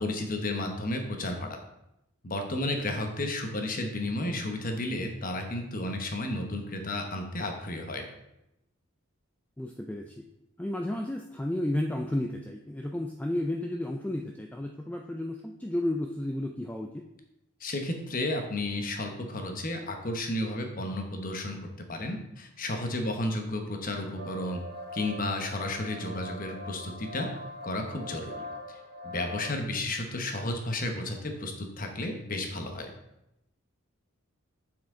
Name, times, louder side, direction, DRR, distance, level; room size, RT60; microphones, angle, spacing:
voice 1, 0.0-1.6 2.2-8.1 17.6-21.6 21.9-24.6 24.9-27.3 27.6-28.3 29.0-32.9, left 1 dB, 40° left, 4 dB, 1.0 m, -32 dB
voice 2, 9.6-10.2 10.6-17.0, left 1 dB, 5° left, 2 dB, 0.3 m, -32 dB
sound 1, 24.2-29.5, left 1 dB, 45° right, 1.4 m, -42 dB
7.5 x 5.8 x 3.8 m, 0.85 s
head